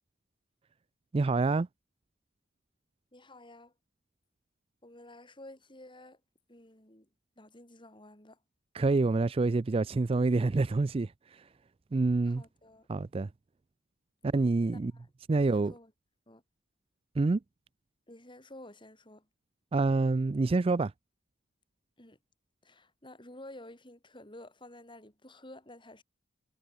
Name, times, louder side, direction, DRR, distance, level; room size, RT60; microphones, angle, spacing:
voice 1, 1.1-1.7 8.7-11.1 11.9-12.4 12.9-13.3 14.2-14.9 15.3-15.7 17.2-17.4 19.7-20.9, right 3 dB, 30° right, 0.4 m, -27 dB
voice 2, 3.1-3.7 4.8-6.2 6.5-7.1 7.4-8.4 12.2-12.9 14.6-15.1 15.4-15.9 16.3-16.4 18.1-19.3 22.0-22.2 22.6-26.0, left 1 dB, 25° left, 7.6 m, -51 dB
head